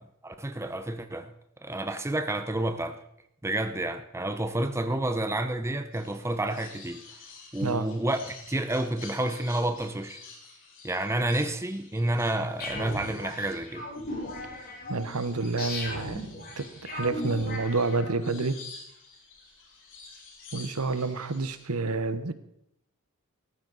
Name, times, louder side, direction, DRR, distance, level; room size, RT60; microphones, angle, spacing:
voice 1, 0.2-1.3 1.6-3.0 3.4-7.0 7.5-10.2 10.8-13.9, right 1 dB, 10° right, 8 dB, 0.8 m, -29 dB
sound 1, 5.9-21.7, left 4 dB, 60° left, 4.6 m, -50 dB
sound 2, 12.6-18.4, left 2 dB, 45° left, 6.6 m, -37 dB
voice 2, 14.9-16.2 16.6-18.5 20.5-22.3, right 3 dB, 80° right, 11 dB, 1.1 m, -29 dB
17.5 x 14.5 x 4.1 m, 0.77 s
head